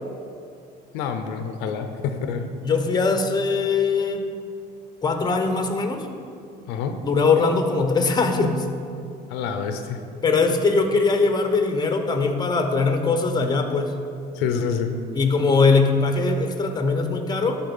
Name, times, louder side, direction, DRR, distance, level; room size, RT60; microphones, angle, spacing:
voice 1, 0.9-2.5 6.7-7.0 9.3-10.0 14.3-15.0, left 6 dB, 90° left, 7 dB, 0.7 m, -27 dB
voice 2, 2.6-4.3 5.0-6.1 7.0-8.7 10.2-13.9 15.1-17.6, left 4 dB, 25° left, 6 dB, 1.0 m, -21 dB
12.0 x 4.3 x 5.5 m, 2.4 s
cardioid pair, 105°, 17 cm